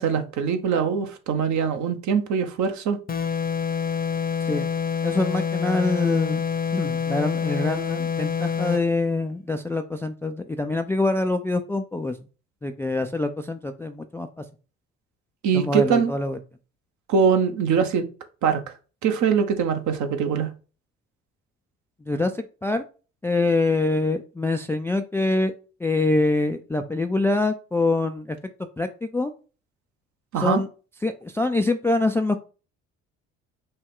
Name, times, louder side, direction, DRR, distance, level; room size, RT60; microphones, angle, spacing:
voice 1, 0.0-3.0 15.4-16.1 17.1-18.0 18.4-18.6 19.0-20.5 30.3-30.6, right 6 dB, 50° right, 0.9 m, -22 dB
sound 1, 3.1-8.9, left 7 dB, 25° left, 0.8 m, -27 dB
voice 2, 5.0-6.4 6.7-12.2 12.6-14.4 15.5-16.4 22.0-22.8 23.2-25.5 25.8-28.4 28.8-29.3 30.4-30.7 31.0-32.4, left 2 dB, 5° left, 0.3 m, -25 dB
5.4 x 2.2 x 3.6 m
figure-of-eight pair, 50°, 38 cm